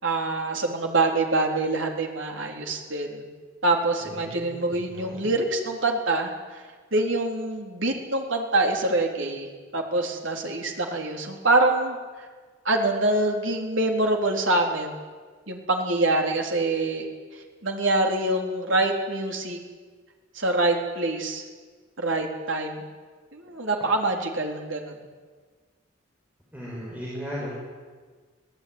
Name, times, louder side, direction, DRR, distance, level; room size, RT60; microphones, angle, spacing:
voice 1, 0.0-3.3 3.6-6.6 6.9-9.5 9.7-12.0 12.7-14.9 15.5-17.1 17.6-19.6 20.4-21.4 22.0-22.8 23.3-24.9, right 2 dB, 70° right, 2 dB, 3.7 m, -25 dB
voice 2, 4.0-5.3 26.5-27.5, equal, 10° right, -6 dB, 6.3 m, -37 dB
26.0 x 18.0 x 9.6 m, 1.5 s
head